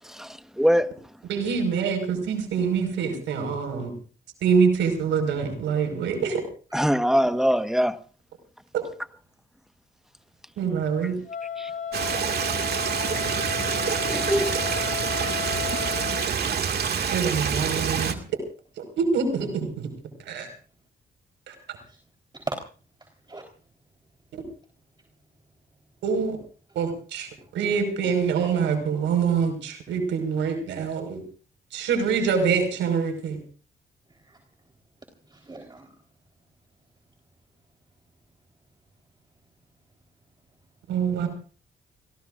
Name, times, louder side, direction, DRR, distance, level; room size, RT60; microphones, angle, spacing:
voice 1, 0.1-0.9 6.7-8.0 11.6-11.7 14.1-14.6, equal, ahead, 1.4 m, -23 dB
voice 2, 1.3-3.9 4.4-6.4 8.7-8.8 10.6-11.2 17.1-18.2 19.0-19.9 20.3-20.5 21.5-21.6 24.3-24.4 26.0-26.4 26.8-31.2 31.7-33.4 40.9-41.3, right 6 dB, 85° right, 5.3 m, -25 dB
Wind instrument woodwind instrument, 11.3-16.3, left 7 dB, 45° left, 1.9 m, -33 dB
Stream, 11.9-18.1, right 6 dB, 60° right, 2.2 m, -27 dB
voice 3, 23.0-23.5 34.1-34.4 35.3-35.9, right 2 dB, 25° right, 4.0 m, -38 dB
29.5 x 18.5 x 2.6 m
supercardioid pair, 65°, 19 cm